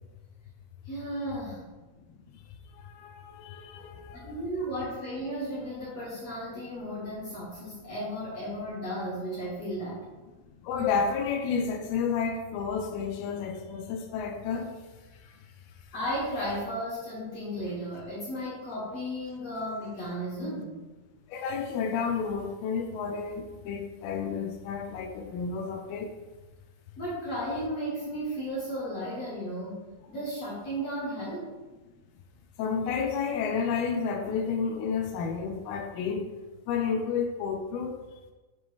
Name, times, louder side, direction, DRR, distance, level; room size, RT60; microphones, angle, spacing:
voice 1, 0.9-1.7 4.1-10.1 15.9-20.8 27.0-31.5, equal, 50° left, 2.0 m, -34 dB
voice 2, 2.7-4.4 10.6-14.8 15.1-15.4 15.8-15.9 21.3-26.2 32.6-36.3 36.7-38.0, left 6 dB, 80° left, 2.4 m, -31 dB
8.8 x 3.2 x 3.5 m
omnidirectional pair, 4.6 m